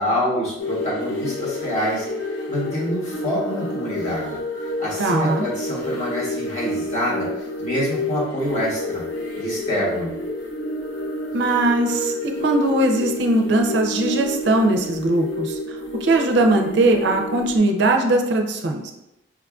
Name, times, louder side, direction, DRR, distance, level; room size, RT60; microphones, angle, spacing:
voice 1, 0.0-2.0 2.5-4.4 4.8-7.3 7.6-9.0 9.4-10.1, equal, 35° left, -6 dB, 1.0 m, -26 dB
sound 1, 0.6-17.6, left 1 dB, 70° left, 0.7 m, -29 dB
voice 2, 5.0-5.4 11.3-15.6 16.0-18.9, right 2 dB, 55° right, 3 dB, 0.4 m, -20 dB
4.6 x 2.4 x 2.3 m, 0.90 s
head